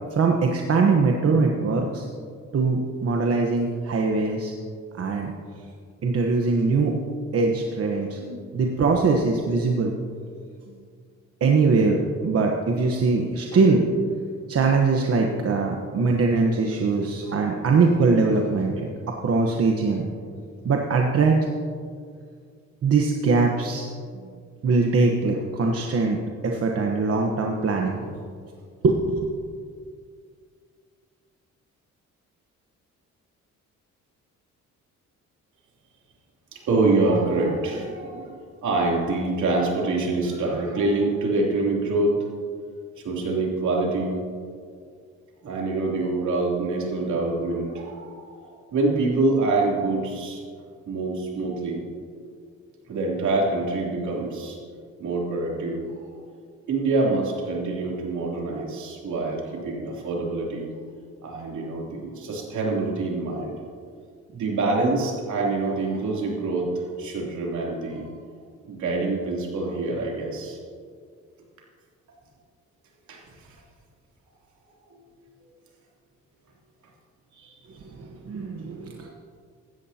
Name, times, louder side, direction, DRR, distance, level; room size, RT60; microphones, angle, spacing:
voice 1, 0.1-2.1 2.5-4.5 4.9-5.3 6.0-7.0 7.3-10.0 11.4-13.8 14.5-18.9 19.2-20.1 20.6-21.3 22.8-23.9 24.6-26.2 26.4-28.1 28.8-29.3 77.8-79.1, right 4 dB, 50° right, 1 dB, 1.2 m, -22 dB
voice 2, 36.5-42.1 43.0-44.2 45.4-50.4 50.9-51.9 52.9-54.6 55.0-56.1 56.7-60.7 61.2-63.6 64.3-68.1 68.6-70.6 73.1-73.6 74.9-75.2 77.3-77.6 79.0-79.1, right 2 dB, 70° right, -2 dB, 3.2 m, -26 dB
16.5 x 13.0 x 2.9 m, 2.1 s
cardioid pair, 90°, 30 cm